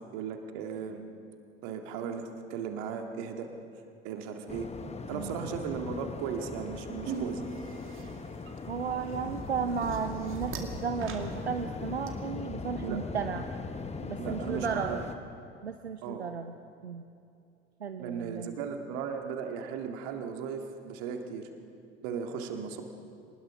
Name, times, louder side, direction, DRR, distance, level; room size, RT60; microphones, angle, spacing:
voice 1, 0.1-1.0 1.6-3.5 4.0-4.7 5.1-7.5 12.8-13.0 14.2-15.0 16.0-16.2 18.0-21.5 22.0-22.8, right 6 dB, 55° right, 5 dB, 2.1 m, -36 dB
Waves surf, 4.5-15.1, left 4 dB, 20° left, 1.3 m, -40 dB
voice 2, 5.1-5.4 8.7-13.4 14.0-15.0 15.6-16.6 16.8-17.1 17.8-18.5, right 6 dB, 85° right, 7 dB, 0.7 m, -34 dB
sound 1, 7.0-12.1, right 5 dB, 40° right, 2.3 m, -41 dB
25.0 x 19.5 x 6.0 m, 2.5 s
figure-of-eight pair, 60°, 31 cm